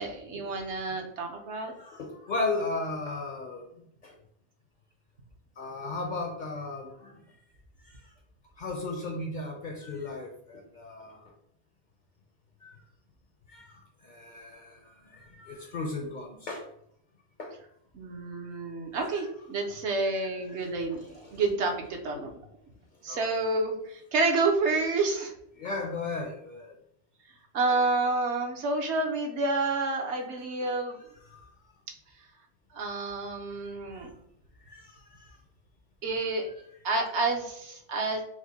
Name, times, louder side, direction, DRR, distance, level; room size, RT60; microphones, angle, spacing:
voice 1, 0.0-1.7 17.9-22.3 23.0-25.3 27.5-31.0 32.7-34.1 36.0-36.5 36.8-38.2, right 3 dB, 70° right, 2 dB, 1.0 m, -29 dB
voice 2, 1.8-3.7 4.0-4.1 5.6-7.1 8.6-11.3 12.6-12.7 13.5-13.7 14.0-14.8 15.1-16.7 17.4-17.5 19.1-19.5 20.2-20.7 21.0-21.5 22.2-22.3 23.1-23.3 24.2-24.3 25.6-26.7 27.7-27.8 31.3-31.4 34.7-34.9 35.2-35.3, left 3 dB, 55° left, 2 dB, 0.6 m, -36 dB
4.9 x 2.1 x 3.9 m, 0.72 s
omnidirectional pair, 1.2 m